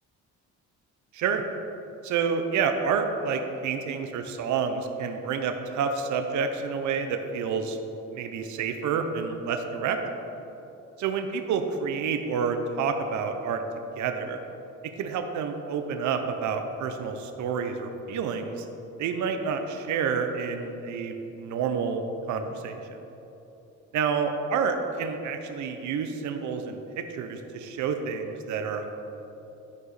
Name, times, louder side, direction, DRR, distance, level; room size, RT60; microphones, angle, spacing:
voice 1, 2.0-7.8 8.1-10.0 11.0-13.6 14.0-14.4 15.0-18.7 19.0-23.0 23.9-28.9, right 6 dB, 70° right, 6 dB, 0.7 m, -29 dB
10.5 x 5.0 x 4.1 m, 3.0 s
cardioid pair, 90°, 30 cm